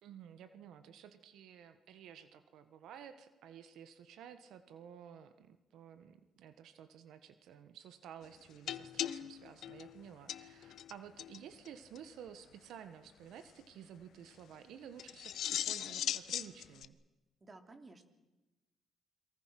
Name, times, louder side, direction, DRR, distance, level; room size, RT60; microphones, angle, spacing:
voice 1, 0.0-17.0, right 8 dB, 80° right, 10 dB, 1.5 m, -53 dB
sound 1, 8.7-10.9 11.2-11.4 11.7-11.8 12.0-12.1 15.0-16.9, left 11 dB, 75° left, 0.9 m, -39 dB
voice 2, 17.4-18.0, right 3 dB, 30° right, 6 dB, 3.3 m, -54 dB
29.5 x 23.5 x 6.1 m, 1.1 s
cardioid pair, 90°, 0 cm